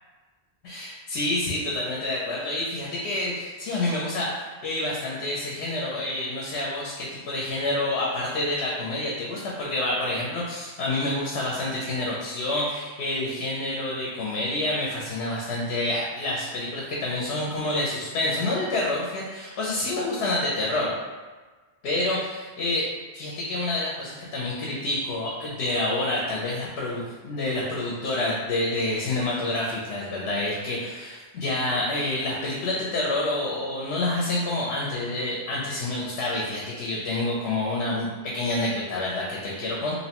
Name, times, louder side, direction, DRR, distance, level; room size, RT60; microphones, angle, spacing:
voice 1, 0.6-20.9 21.8-22.9 23.1-39.9, left 2 dB, 90° left, -4 dB, 0.9 m, -28 dB
2.7 x 2.0 x 2.8 m, 1.3 s
omnidirectional pair, 1.1 m